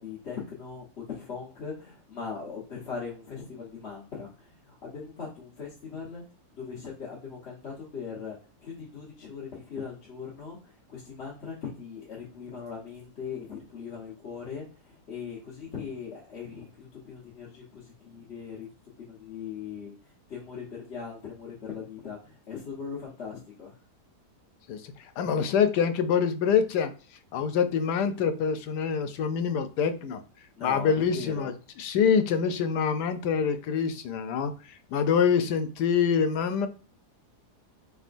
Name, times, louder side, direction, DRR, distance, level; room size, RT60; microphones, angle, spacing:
voice 1, 0.0-6.2 6.5-18.7 19.0-23.7 30.6-31.5, left 6 dB, 45° left, -5 dB, 1.3 m, -40 dB
voice 2, 25.2-26.9 27.3-30.2 30.6-34.5 34.9-36.7, left 7 dB, 90° left, 9 dB, 1.2 m, -25 dB
4.3 x 3.5 x 2.5 m, 0.37 s
omnidirectional pair, 1.7 m